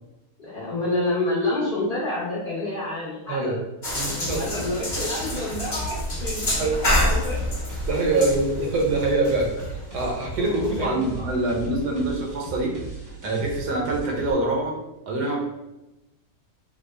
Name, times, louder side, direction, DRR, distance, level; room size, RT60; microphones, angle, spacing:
voice 1, 0.4-3.5 4.0-7.5 10.3-11.1, left 2 dB, 50° left, -9 dB, 0.7 m, -28 dB
voice 2, 3.3-3.6 3.9-4.4 6.6-6.8 7.9-9.5 9.9-12.8 13.2-14.8 15.1-15.4, right 2 dB, 75° right, -1 dB, 1.3 m, -24 dB
sound 1, 3.8-10.8, left 1 dB, 20° left, 0.8 m, -28 dB
sound 2, 4.2-14.3, right 2 dB, 25° right, 0.4 m, -37 dB
3.5 x 2.0 x 3.2 m, 0.96 s
omnidirectional pair, 1.8 m